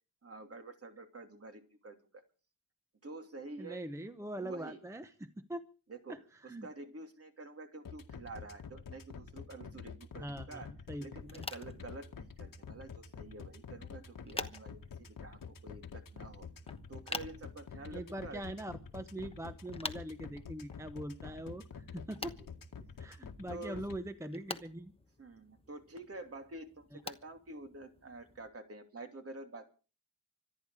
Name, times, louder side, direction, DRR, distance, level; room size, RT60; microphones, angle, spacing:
voice 1, 0.2-2.2 3.0-3.8 4.4-4.8 5.9-6.2 6.4-10.7 11.0-16.5 16.9-18.4 19.2-19.3 22.2-22.5 23.5-23.8 25.2-29.7, right 2 dB, 40° right, 6 dB, 2.9 m, -48 dB
voice 2, 3.6-5.6 6.1-6.7 10.2-11.5 17.9-22.3 23.0-24.9, right 1 dB, 10° right, 10 dB, 0.8 m, -43 dB
sound 1, 7.8-24.0, left 6 dB, 60° left, 2.1 m, -47 dB
sound 2, 11.2-28.5, left 3 dB, 15° left, 1.1 m, -49 dB
26.0 x 10.5 x 4.9 m, 0.37 s
wide cardioid pair, 145°, 37 cm